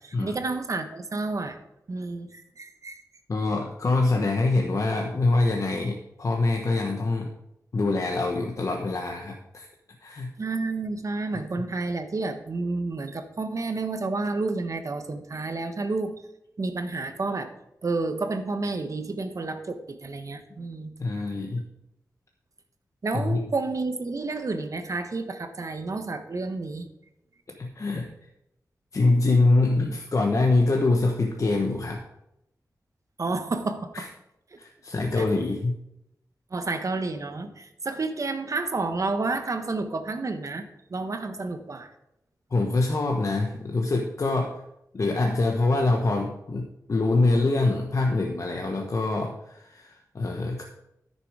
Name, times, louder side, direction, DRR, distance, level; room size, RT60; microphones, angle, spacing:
voice 1, 0.0-1.6 1.9-3.0 10.4-16.1 16.6-17.5 17.8-20.9 23.0-26.9 33.2-33.9 35.1-35.3 36.5-40.6 40.9-41.9, right 3 dB, 55° right, 8 dB, 1.2 m, -30 dB
voice 2, 3.3-7.3 7.7-9.7 10.0-10.3 21.0-21.7 23.1-23.4 27.5-28.1 28.9-32.0 33.9-34.1 34.6-35.8 42.5-44.6 44.9-50.6, left 2 dB, 55° left, 2 dB, 1.1 m, -24 dB
13.0 x 6.8 x 4.9 m, 0.83 s
wide cardioid pair, 70°, 7 cm